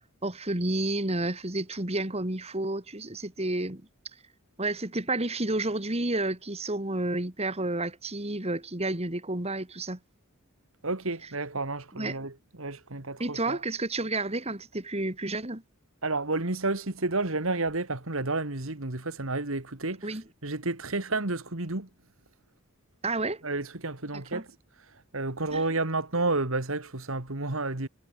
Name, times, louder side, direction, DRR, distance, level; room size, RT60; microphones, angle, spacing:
voice 1, 0.2-4.2 4.6-10.0 11.2-11.3 11.9-12.2 13.2-15.6 20.0-20.3 23.0-23.4 24.1-24.4 25.5-25.7, right 2 dB, 30° right, 2.8 m, -31 dB
voice 2, 10.8-12.3 12.6-13.6 16.0-20.0 20.4-21.9 23.4-24.4 25.1-27.9, right 2 dB, 65° right, 2.3 m, -30 dB
head